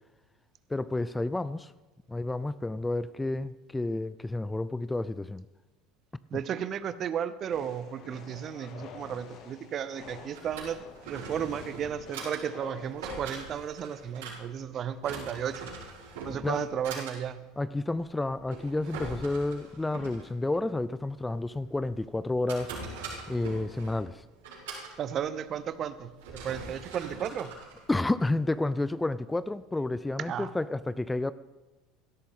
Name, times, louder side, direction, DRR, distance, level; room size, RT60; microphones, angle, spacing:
voice 1, 0.7-1.7 2.1-5.5 16.4-16.6 17.6-22.7 23.3-24.2 27.9-31.3, left 2 dB, 10° left, 16 dB, 0.4 m, -30 dB
voice 2, 6.3-10.8 11.0-15.6 16.2-17.4 25.0-27.5 30.3-30.5, right 8 dB, 45° right, 14 dB, 0.8 m, -34 dB
sound 1, 7.5-12.9, left 6 dB, 55° left, 1.7 m, -48 dB
Drawer open or close, 10.0-28.6, right 3 dB, 75° right, 5.6 m, -43 dB
17.0 x 13.0 x 3.7 m, 1.1 s
hypercardioid pair, 75°, 0 cm